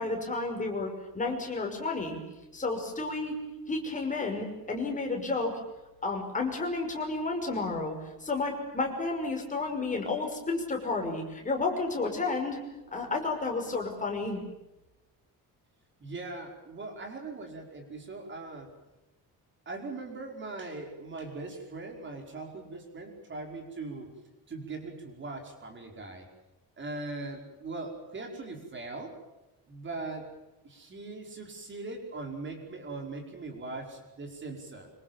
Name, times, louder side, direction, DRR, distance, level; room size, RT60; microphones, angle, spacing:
voice 1, 0.0-2.2 2.5-3.4 3.7-5.6 6.0-12.6 12.9-14.4, left 3 dB, 20° left, 2 dB, 5.7 m, -31 dB
voice 2, 16.0-18.7 19.7-24.1 24.5-26.3 26.8-29.2 29.7-30.3 30.6-34.9, right 3 dB, 30° right, 2 dB, 5.2 m, -40 dB
26.0 x 26.0 x 7.4 m, 0.99 s
cardioid pair, 180°, 36 cm